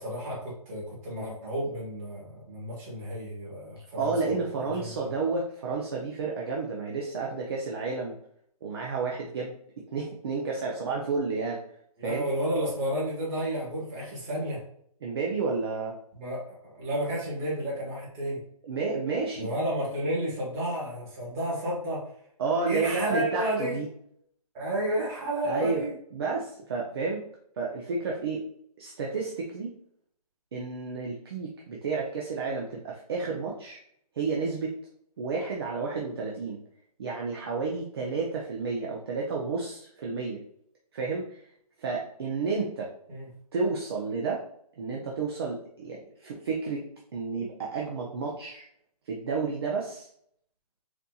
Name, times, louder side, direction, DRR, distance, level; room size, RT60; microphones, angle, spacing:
voice 1, 0.0-5.1 12.0-14.6 16.1-16.4 16.7-18.4 19.3-22.0 22.7-23.8 24.5-25.9 43.1-43.3, right 1 dB, 20° right, -6 dB, 1.5 m, -31 dB
voice 2, 3.9-8.1 8.6-9.5 9.9-11.6 12.0-12.3 15.0-15.9 18.6-19.6 22.4-23.9 25.4-25.8 26.1-27.2 27.6-28.4 28.8-29.7 30.5-33.8 34.1-34.8 35.2-36.6 37.0-40.4 40.9-41.4 41.8-42.9 43.5-44.4 44.8-46.8 47.1-48.6 49.1-50.1, right 4 dB, 40° right, -2 dB, 0.6 m, -31 dB
4.2 x 2.7 x 2.3 m, 0.67 s
hypercardioid pair, 155°, 20 cm